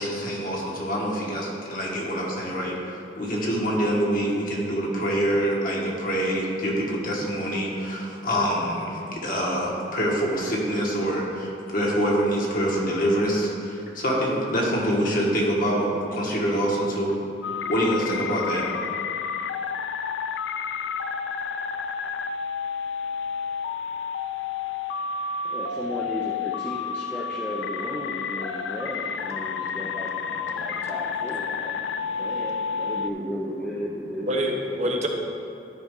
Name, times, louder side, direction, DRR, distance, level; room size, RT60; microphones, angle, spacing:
voice 1, 0.0-17.1 17.6-18.7, equal, 50° left, -3 dB, 1.5 m, -25 dB
sound 1, 17.4-33.1, left 6 dB, 80° left, 0.4 m, -30 dB
voice 2, 25.4-30.1 30.4-31.7 32.2-34.4, equal, 10° left, -4 dB, 0.5 m, -35 dB
voice 3, 30.3-30.9 31.6-32.3 32.6-32.9 33.2-33.3 34.3-35.1, equal, 40° right, 1 dB, 0.8 m, -31 dB
12.5 x 5.2 x 3.7 m, 2.7 s
head